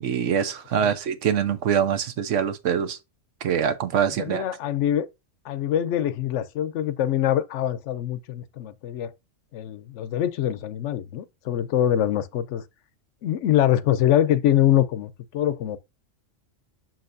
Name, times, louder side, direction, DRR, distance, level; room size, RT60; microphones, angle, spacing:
voice 1, 0.0-3.0 3.4-4.4, right 8 dB, 75° right, 1.1 m, -24 dB
voice 2, 4.2-5.1 5.5-9.1 9.5-12.6 13.2-15.8, left 11 dB, 75° left, 0.9 m, -24 dB
6.5 x 5.9 x 2.6 m
omnidirectional pair, 1.3 m